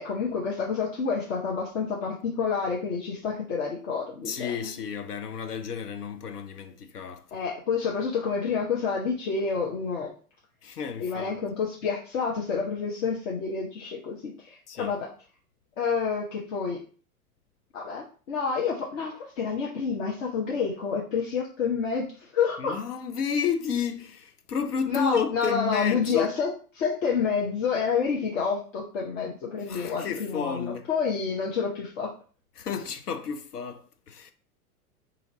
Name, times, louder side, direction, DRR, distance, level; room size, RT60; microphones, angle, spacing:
voice 1, 0.0-4.7 7.3-10.1 11.0-15.1 15.8-16.8 17.7-22.8 24.9-32.1, left 5 dB, 55° left, 0.9 m, -29 dB
voice 2, 4.3-7.3 10.6-11.4 14.7-15.0 22.6-26.3 29.7-30.9 32.6-34.3, left 7 dB, 85° left, 0.7 m, -31 dB
2.8 x 2.8 x 4.0 m
figure-of-eight pair, 95°, 45 cm